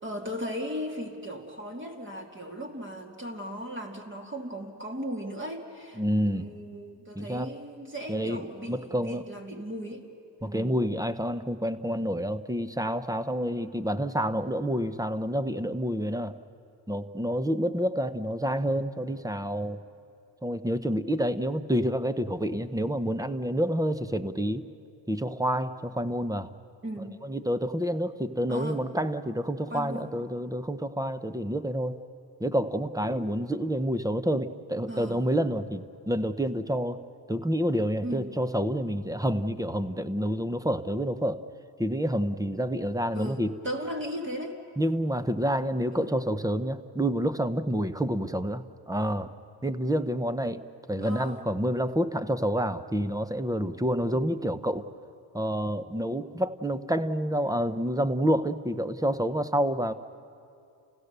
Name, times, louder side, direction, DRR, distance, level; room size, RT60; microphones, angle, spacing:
voice 1, 0.0-10.1 10.4-10.7 26.8-27.2 28.5-28.8 29.7-30.1 34.9-35.2 38.0-38.3 43.1-44.6 45.9-46.1 51.0-51.4, equal, 25° right, 2 dB, 2.5 m, -37 dB
voice 2, 6.0-6.5 7.1-7.5 8.1-8.4 8.7-9.2 10.4-16.4 16.9-19.8 20.4-24.6 25.1-26.5 27.2-32.0 32.4-37.0 37.3-41.4 41.8-43.6 44.8-49.3 49.6-50.6 50.9-54.9 55.3-59.9, equal, 10° right, 12 dB, 0.9 m, -28 dB
29.5 x 16.5 x 6.8 m, 2.5 s
supercardioid pair, 75°, 46 cm